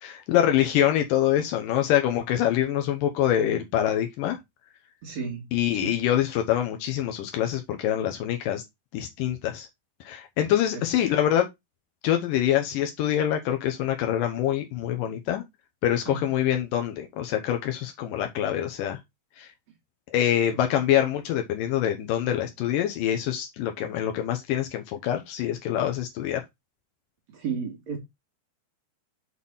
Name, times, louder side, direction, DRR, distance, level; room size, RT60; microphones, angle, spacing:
voice 1, 0.0-4.4 5.5-8.6 8.9-9.7 10.0-11.5 12.0-15.4 15.8-19.0 19.4-19.5 20.1-26.4, left 11 dB, 85° left, 1.9 m, -25 dB
voice 2, 5.0-6.0 16.1-16.4 27.3-28.0, right 5 dB, 45° right, 2.8 m, -33 dB
6.7 x 4.3 x 5.5 m
omnidirectional pair, 5.3 m